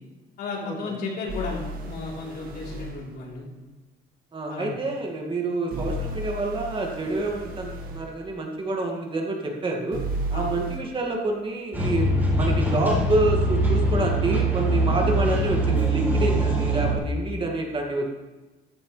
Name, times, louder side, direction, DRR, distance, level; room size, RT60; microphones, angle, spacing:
voice 1, 0.4-3.5 4.5-4.7 10.3-10.5, left 4 dB, 65° left, -3 dB, 3.7 m, -33 dB
sound 1, 1.3-3.0 5.7-8.0 9.9-10.8, right 1 dB, 60° right, 1.9 m, -33 dB
voice 2, 4.3-10.0 10.3-12.1 12.4-18.1, right 2 dB, 30° right, 0 dB, 2.1 m, -27 dB
sound 2, 11.7-17.0, right 1 dB, 10° right, 4.0 m, -23 dB
14.5 x 9.5 x 3.3 m, 1.1 s
cardioid pair, 110°, 17 cm